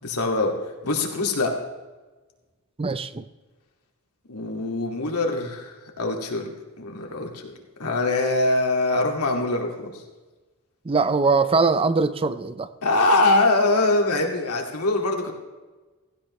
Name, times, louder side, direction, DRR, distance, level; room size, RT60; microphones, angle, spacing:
voice 1, 0.0-0.5 0.8-1.5 4.3-6.5 6.8-7.5 7.8-10.0 12.8-15.3, left 2 dB, 80° left, 2 dB, 2.3 m, -23 dB
voice 2, 2.8-3.2 10.9-12.7, right 4 dB, 25° right, 13 dB, 0.5 m, -21 dB
16.5 x 15.0 x 3.2 m, 1.2 s
head